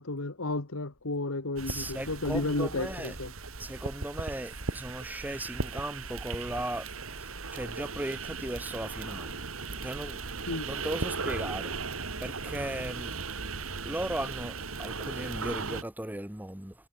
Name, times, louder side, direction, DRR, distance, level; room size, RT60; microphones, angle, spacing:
voice 1, 0.0-3.3 10.5-10.7, left 2 dB, 85° left, 1.8 m, -32 dB
sound 1, 1.6-15.8, right 4 dB, 90° right, 2.9 m, -37 dB
voice 2, 1.7-3.2 3.6-9.3 9.8-10.2 10.7-11.8 12.2-13.1 13.8-16.7, right 1 dB, 10° right, 2.0 m, -37 dB
head